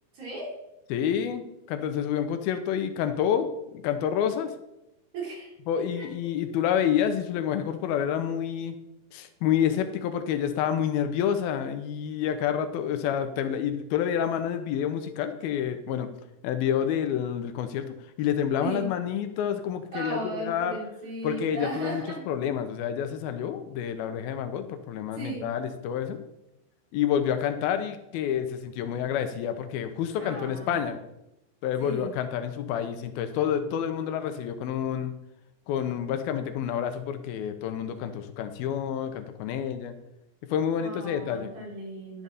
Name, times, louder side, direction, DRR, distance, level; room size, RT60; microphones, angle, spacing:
voice 1, 0.1-0.5 5.1-5.5 6.0-6.1 18.6-18.9 19.9-22.2 25.1-25.5 30.1-30.9 31.8-32.2 40.8-42.2, right 2 dB, 50° right, -4 dB, 4.7 m, -36 dB
voice 2, 0.9-4.5 5.7-8.8 9.1-16.1 16.4-20.8 21.2-26.2 26.9-31.0 31.6-35.1 35.7-39.9 40.5-41.5, left 9 dB, 85° left, 9 dB, 2.7 m, -28 dB
11.0 x 8.9 x 4.1 m, 0.87 s
omnidirectional pair, 4.3 m